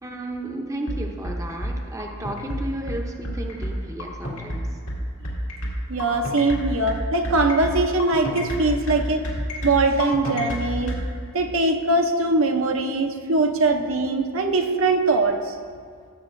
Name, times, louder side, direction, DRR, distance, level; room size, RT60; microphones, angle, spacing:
voice 1, 0.0-4.7, right 1 dB, 15° right, 1 dB, 0.6 m, -33 dB
sound 1, 0.9-11.0, equal, 80° left, 2.2 m, -29 dB
voice 2, 5.9-9.3 9.6-10.9 11.3-15.6, right 2 dB, 65° right, 5 dB, 0.7 m, -21 dB
16.0 x 7.3 x 2.6 m, 2.1 s
head